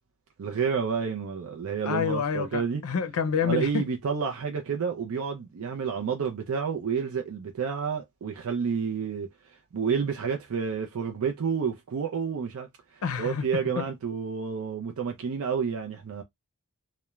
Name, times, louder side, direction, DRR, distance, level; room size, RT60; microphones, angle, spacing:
voice 1, 0.4-2.8 3.4-16.2, right 6 dB, 75° right, 0.4 m, -30 dB
voice 2, 1.8-3.8 13.0-13.5 13.8-13.9, left 6 dB, 80° left, 0.5 m, -28 dB
2.9 x 2.1 x 2.2 m
head